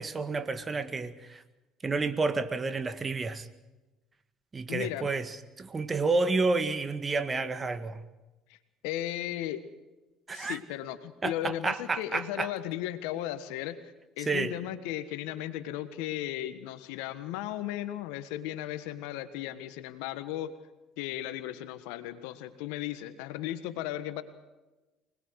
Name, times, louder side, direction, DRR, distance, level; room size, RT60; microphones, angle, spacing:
voice 1, 0.0-1.4 1.8-3.5 4.5-8.0 10.3-10.6 11.2-12.5 14.3-14.5, right 3 dB, 30° right, 12 dB, 1.8 m, -30 dB
voice 2, 4.7-5.1 8.5-8.6 8.8-9.6 10.3-13.8 14.2-20.5 21.0-24.2, left 13 dB, 80° left, 11 dB, 1.5 m, -36 dB
25.0 x 20.0 x 6.5 m, 1.1 s
hypercardioid pair, 70°, 0 cm